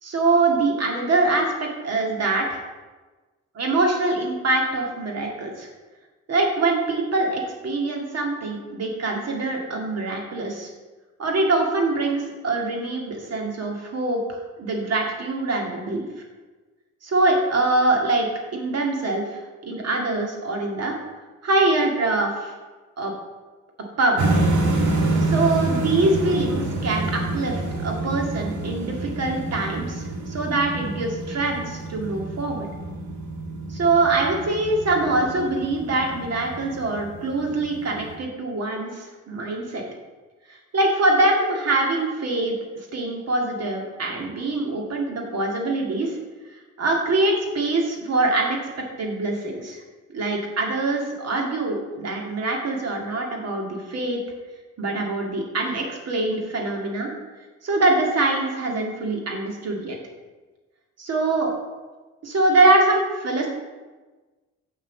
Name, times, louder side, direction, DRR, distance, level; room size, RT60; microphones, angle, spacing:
voice 1, 0.0-2.6 3.6-5.7 6.3-10.7 11.2-16.1 17.0-21.0 21.4-22.5 23.0-23.1 24.0-24.3 25.3-32.7 33.7-39.8 40.5-42.5 42.9-46.2 46.8-48.6 49.0-49.8 50.1-54.2 54.8-57.1 57.6-60.0 61.0-61.6 62.2-63.5, right 2 dB, 55° right, 1 dB, 2.1 m, -24 dB
sound 1, 24.2-38.2, right 2 dB, 75° right, 1.6 m, -27 dB
6.2 x 6.0 x 7.0 m, 1.3 s
cardioid pair, 90°, 30 cm